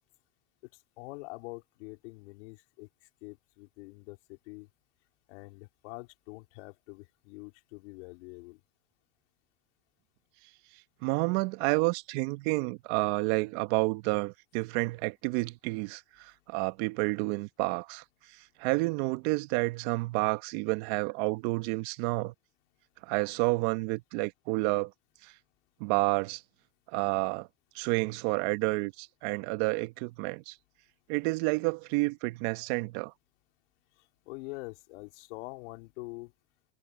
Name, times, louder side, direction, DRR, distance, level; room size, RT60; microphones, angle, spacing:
voice 1, 1.0-2.9 3.2-4.7 5.3-8.6 34.3-36.3, left 25 dB, 75° left, 4.4 m, -45 dB
voice 2, 11.0-18.0 18.6-22.3 23.0-24.9 25.2-25.3 25.8-26.4 26.9-27.5 27.7-30.6 31.1-33.1, right 25 dB, 70° right, 1.4 m, -30 dB
supercardioid pair, 95°, 35 cm